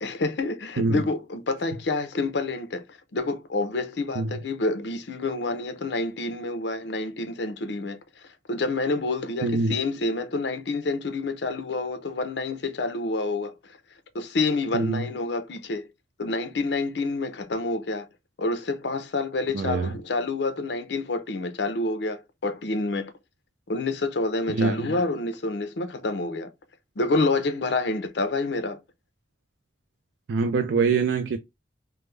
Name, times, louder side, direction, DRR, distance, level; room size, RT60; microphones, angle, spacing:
voice 1, 0.0-2.8 3.1-8.0 8.5-13.5 14.1-15.8 16.2-18.1 18.4-23.1 23.7-26.5 27.0-28.8, left 3 dB, 70° left, 0.6 m, -28 dB
voice 2, 9.4-9.8 14.7-15.0 19.5-19.9 24.5-24.9 30.3-31.4, right 4 dB, 80° right, 0.4 m, -24 dB
3.3 x 2.1 x 3.2 m
head